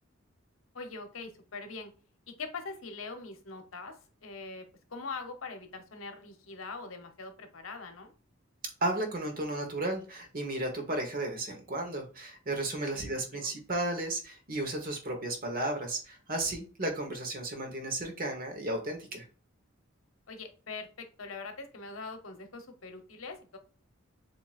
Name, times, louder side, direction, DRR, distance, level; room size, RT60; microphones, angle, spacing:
voice 1, 0.7-1.9 2.4-4.0 4.2-8.1 12.9-13.5 20.3-23.6, left 4 dB, 80° left, 6 dB, 0.9 m, -42 dB
voice 2, 8.8-19.3, right 1 dB, 45° right, 4 dB, 1.2 m, -34 dB
7.3 x 2.9 x 2.5 m, 0.38 s
head